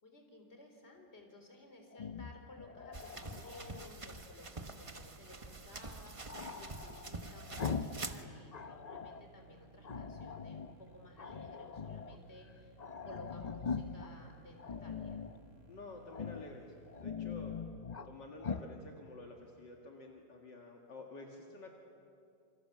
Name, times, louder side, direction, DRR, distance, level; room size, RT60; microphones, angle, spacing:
voice 1, 0.0-12.8 13.0-15.2, left 2 dB, 30° left, 3 dB, 4.0 m, -56 dB
Growling, 1.9-3.9 6.3-8.1 8.3-9.2 9.8-10.7 11.2-12.2 12.5-12.6 12.8-14.1 14.6-15.4 16.1-16.5 16.9-18.1 18.4-18.7, left 5 dB, 80° left, 0.3 m, -42 dB
sound 1, 2.9-8.2, right 3 dB, 25° right, 0.7 m, -46 dB
sound 2, 5.5-17.0, right 3 dB, 40° right, 2.4 m, -62 dB
voice 2, 15.7-16.7 17.0-17.5 18.0-21.7, left 2 dB, 65° left, 1 dB, 2.6 m, -50 dB
28.0 x 26.0 x 7.4 m, 2.6 s
omnidirectional pair, 2.1 m